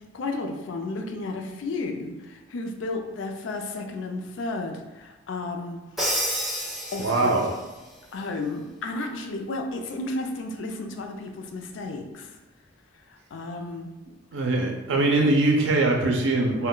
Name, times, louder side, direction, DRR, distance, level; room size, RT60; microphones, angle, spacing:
voice 1, 0.1-5.8 6.9-7.4 8.1-12.3 13.1-13.9, left 2 dB, 75° left, 4 dB, 0.4 m, -33 dB
Crash cymbal, 6.0-7.6, equal, ahead, 0.4 m, -29 dB
voice 2, 7.0-7.5 14.3-16.7, right 2 dB, 75° right, 1 dB, 0.5 m, -22 dB
2.2 x 2.1 x 3.7 m, 1.2 s
head